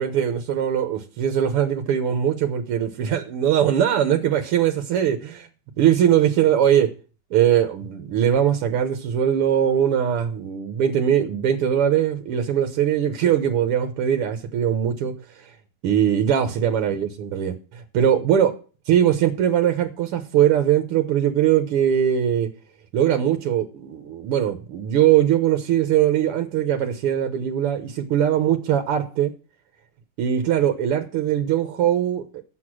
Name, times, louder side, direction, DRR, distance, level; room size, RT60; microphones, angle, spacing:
voice 1, 0.0-5.5 5.8-6.9 7.3-15.1 15.8-18.5 18.9-22.5 22.9-29.3 30.2-32.4, right 10 dB, 90° right, 1.9 m, -21 dB
8.0 x 6.9 x 6.1 m
omnidirectional pair, 2.4 m